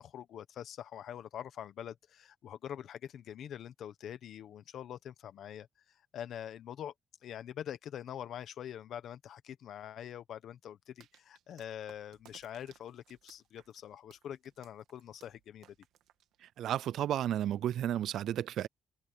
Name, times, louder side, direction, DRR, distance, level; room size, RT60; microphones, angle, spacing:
voice 1, 0.0-6.9 7.2-15.7, left 10 dB, 55° left, 1.2 m, -44 dB
sound 1, 11.0-16.8, right 12 dB, 75° right, 1.8 m, -63 dB
voice 2, 16.4-18.7, right 11 dB, 60° right, 0.3 m, -33 dB
open air
cardioid pair, 165°, 0 cm